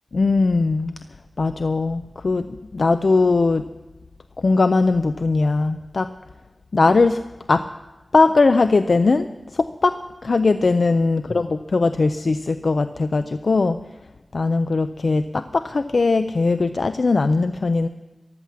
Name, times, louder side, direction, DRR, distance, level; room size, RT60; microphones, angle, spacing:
voice 1, 0.1-0.9 1.4-2.5 2.7-3.7 4.4-6.1 6.7-7.2 7.5-7.6 8.1-10.0 10.2-13.8 14.3-17.9, left 3 dB, 70° left, 10 dB, 0.5 m, -19 dB
14.0 x 11.5 x 7.4 m, 1.1 s
wide cardioid pair, 70°, 0 cm